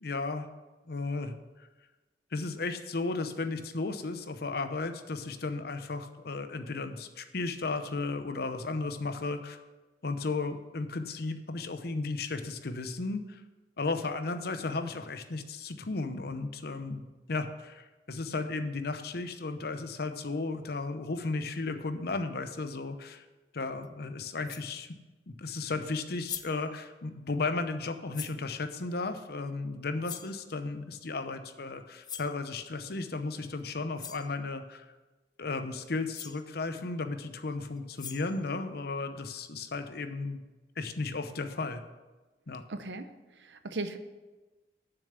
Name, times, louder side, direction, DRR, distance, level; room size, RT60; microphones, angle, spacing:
voice 1, 0.0-0.5 0.9-1.7 2.3-9.6 10.0-13.4 13.8-23.2 23.5-24.9 25.3-34.8 35.4-40.4 40.8-41.8 42.5-42.6, left 3 dB, 60° left, 9 dB, 0.8 m, -34 dB
sound 1, 23.8-23.9 24.4-24.7 25.9-26.0 26.2-26.7 28.1-28.4 30.0-30.4 32.0-32.4 33.6-33.7 34.0-34.3 35.8-35.9 36.1-36.4 37.8-38.4, left 8 dB, 25° left, 0.4 m, -42 dB
voice 2, 42.7-44.0, right 2 dB, 85° right, 9 dB, 0.8 m, -38 dB
7.0 x 6.9 x 8.0 m, 1.2 s
head